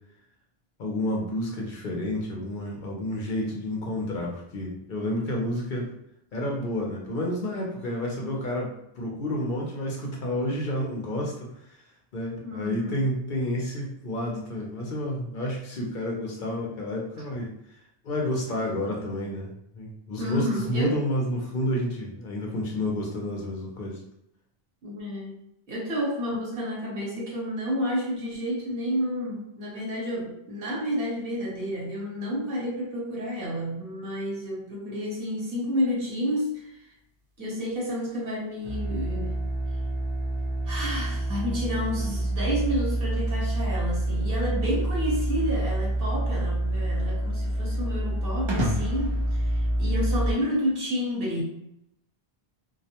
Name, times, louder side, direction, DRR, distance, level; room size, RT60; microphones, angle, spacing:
voice 1, 0.8-5.9 6.3-11.5 12.1-17.5 18.0-24.0, left 1 dB, 60° left, -1 dB, 0.7 m, -30 dB
voice 2, 12.4-13.1 20.2-21.0 24.8-25.4 25.7-36.9 37.4-39.4 40.6-51.4, equal, 65° right, -3 dB, 1.1 m, -30 dB
sound 1, 38.6-50.3, right 1 dB, 35° right, 0.5 m, -27 dB
2.3 x 2.1 x 2.8 m, 0.79 s
omnidirectional pair, 1.0 m